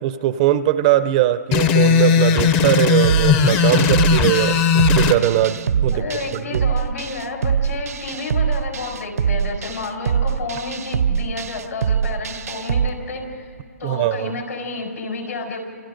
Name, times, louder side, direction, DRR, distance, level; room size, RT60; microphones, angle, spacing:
voice 1, 0.0-6.0 6.5-6.7 13.8-14.3, right 13 dB, 25° right, 14 dB, 0.5 m, -20 dB
sound 1, 1.5-5.2, left 6 dB, 20° left, 0.6 m, -17 dB
sound 2, 3.0-12.9, right 7 dB, 70° right, 0.7 m, -23 dB
voice 2, 5.9-13.5 13.8-15.6, left 3 dB, 80° left, 0 dB, 6.0 m, -30 dB
29.5 x 27.0 x 3.9 m, 2.3 s
hypercardioid pair, 155°, 9 cm